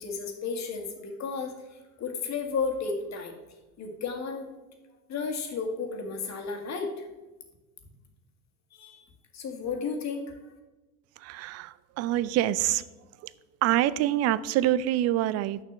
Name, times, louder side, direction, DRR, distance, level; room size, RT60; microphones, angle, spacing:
voice 1, 0.0-1.5 2.0-3.3 3.8-4.5 5.1-7.1 8.7-9.0 9.3-10.4, left 5 dB, 40° left, 4 dB, 1.8 m, -33 dB
voice 2, 11.2-12.8 13.2-13.3 13.6-15.6, right 13 dB, 35° right, 18 dB, 0.4 m, -26 dB
6.8 x 5.8 x 7.2 m, 1.1 s
hypercardioid pair, 90°, 44 cm